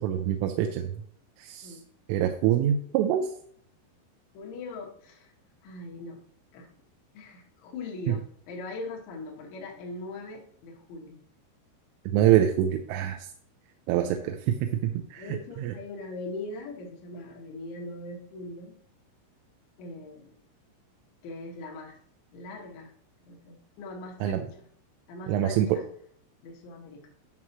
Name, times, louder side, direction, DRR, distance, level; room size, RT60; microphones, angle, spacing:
voice 1, 0.0-0.9 1.4-1.8 2.1-3.3 12.1-13.3 13.9-15.3 15.6-15.7 24.2-24.4 25.3-25.8, right 11 dB, 90° right, 4 dB, 3.2 m, -25 dB
voice 2, 4.3-5.3 5.6-6.2 6.5-6.7 7.1-11.2 14.0-14.6 15.2-18.8 19.8-20.4 21.2-22.0 22.3-22.9 23.2-24.7 25.1-25.8 26.4-27.1, left 2 dB, 75° left, -2 dB, 3.5 m, -41 dB
11.0 x 6.1 x 3.1 m, 0.63 s
omnidirectional pair, 5.6 m